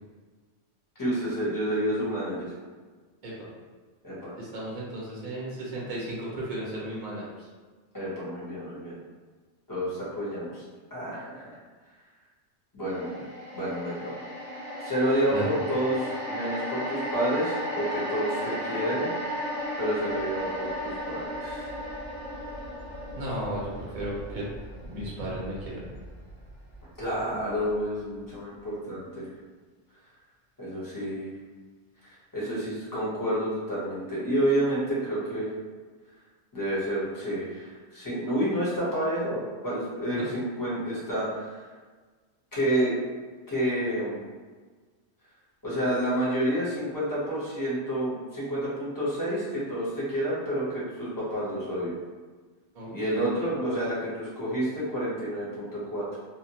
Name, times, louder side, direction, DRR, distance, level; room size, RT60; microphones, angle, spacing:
voice 1, 1.0-2.5 4.0-4.3 7.9-9.0 9.7-10.6 10.9-11.5 12.7-13.2 13.5-14.1 14.8-19.1 19.8-21.7 27.0-29.3 30.6-31.3 32.3-35.5 36.5-41.6 42.5-43.0 43.5-44.2 45.6-52.0 52.9-56.2, right 1 dB, 20° left, -8 dB, 0.8 m, -29 dB
voice 2, 4.4-7.5 15.3-15.5 23.1-24.4 24.8-25.8 40.1-40.3 52.7-53.3, right 1 dB, 40° right, -5 dB, 0.7 m, -35 dB
sound 1, 12.9-27.2 27.6-27.7, equal, 65° left, 1.2 m, -35 dB
2.7 x 2.1 x 2.8 m, 1.4 s
omnidirectional pair, 1.2 m